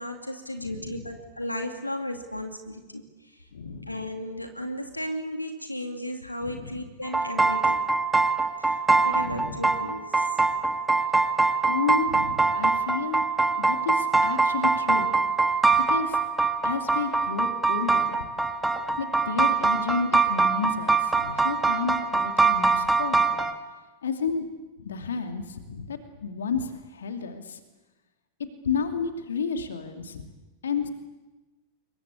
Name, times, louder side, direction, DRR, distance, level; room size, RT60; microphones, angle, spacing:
voice 1, 0.0-3.5 3.9-7.8 8.6-10.4, left 1 dB, 85° left, 5 dB, 2.5 m, -35 dB
voice 2, 0.6-1.1 3.5-3.9 6.4-6.8 9.1-9.7 11.6-13.3 13.6-16.2 16.6-18.2 19.0-23.4 24.0-24.5 24.8-27.6 28.6-30.3 30.6-30.9, left 5 dB, 65° left, 6 dB, 2.6 m, -31 dB
sound 1, 7.0-23.5, right 3 dB, 10° right, 2.0 m, -23 dB
27.5 x 23.0 x 8.5 m, 1.1 s
figure-of-eight pair, 90°, 0 cm